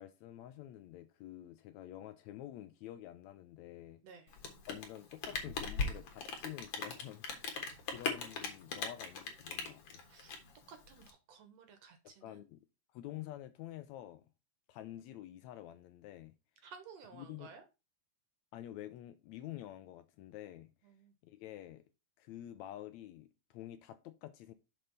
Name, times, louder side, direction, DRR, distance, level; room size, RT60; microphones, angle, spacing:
voice 1, 0.0-4.0 4.7-10.0 12.0-12.6 12.9-14.3 14.7-16.4 17.1-17.5 18.5-20.7 21.2-21.8 22.2-24.5, left 13 dB, 75° left, 1.7 m, -49 dB
voice 2, 4.0-4.4 10.1-10.4 10.7-12.4 16.6-17.6 20.8-21.1, right 6 dB, 65° right, 2.1 m, -55 dB
Rain, 4.3-11.1, left 4 dB, 55° left, 2.2 m, -39 dB
6.5 x 4.5 x 5.3 m
omnidirectional pair, 3.5 m